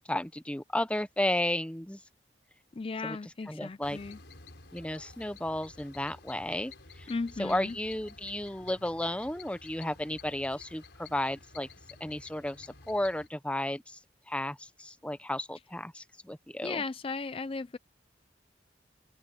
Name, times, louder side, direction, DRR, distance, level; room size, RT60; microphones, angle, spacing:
voice 1, 0.0-2.0 3.0-3.2 3.5-4.0 4.7-6.7 7.0-7.1 7.4-11.7 12.0-14.0 14.3-16.8, left 1 dB, 5° left, 0.8 m, -33 dB
voice 2, 2.7-4.2 7.1-7.8 16.6-17.8, left 4 dB, 30° left, 0.4 m, -36 dB
sound 1, 3.8-13.3, left 4 dB, 85° left, 4.6 m, -52 dB
open air
head